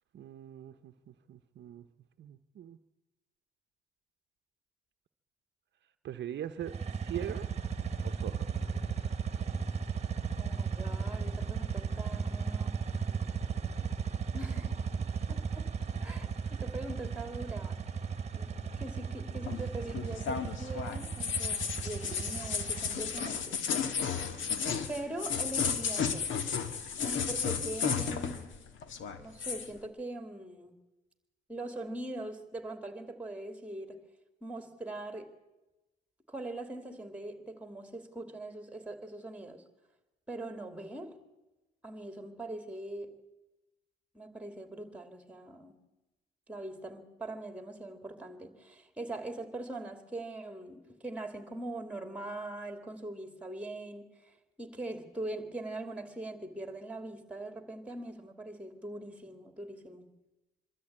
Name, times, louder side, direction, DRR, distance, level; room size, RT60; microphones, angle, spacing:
voice 1, 0.1-1.9 2.2-2.8 6.0-7.5 8.0-8.5, right 10 dB, 65° right, 8 dB, 0.8 m, -41 dB
sound 1, 6.6-23.3, right 6 dB, 35° right, 1.4 m, -35 dB
voice 2, 10.4-12.8 14.3-14.8 15.3-15.7 16.0-17.8 18.3-23.6 24.9-26.4 27.0-28.6 29.2-30.8 31.5-34.0 34.4-35.3 36.3-39.6 40.3-41.2 41.8-43.2 44.1-45.8 46.5-60.1, right 2 dB, 5° right, 7 dB, 2.7 m, -42 dB
sound 2, 19.5-28.6 28.8-29.7, left 6 dB, 75° left, 1.6 m, -33 dB
23.0 x 13.0 x 8.7 m, 1.1 s
cardioid pair, 90°, 20 cm